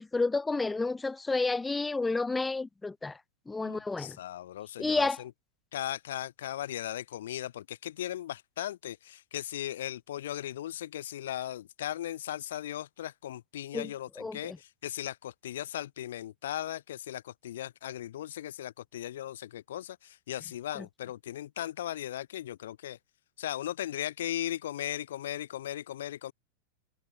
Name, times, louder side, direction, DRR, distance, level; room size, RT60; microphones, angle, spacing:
voice 1, 0.0-3.2 3.5-4.2 4.8-5.2 13.7-13.9 14.2-14.6, left 3 dB, 10° left, 1.3 m, -30 dB
voice 2, 3.6-5.3 5.7-23.0 23.4-26.3, left 12 dB, 60° left, 1.5 m, -37 dB
figure-of-eight pair, 90°, 0 cm